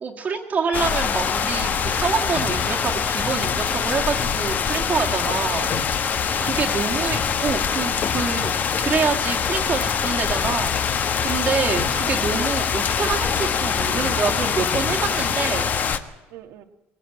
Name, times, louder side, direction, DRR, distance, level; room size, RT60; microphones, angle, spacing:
voice 1, 0.0-5.7 6.4-8.5 8.8-10.8 11.2-15.7, right 5 dB, 30° right, 1 dB, 1.8 m, -26 dB
sound 1, 0.7-16.0, left 7 dB, 40° left, 1.1 m, -24 dB
voice 2, 5.3-6.3 6.8-7.1 11.4-12.3 16.3-16.6, right 12 dB, 80° right, 9 dB, 1.6 m, -41 dB
20.5 x 16.5 x 9.1 m, 1.0 s
cardioid pair, 140°, 5 cm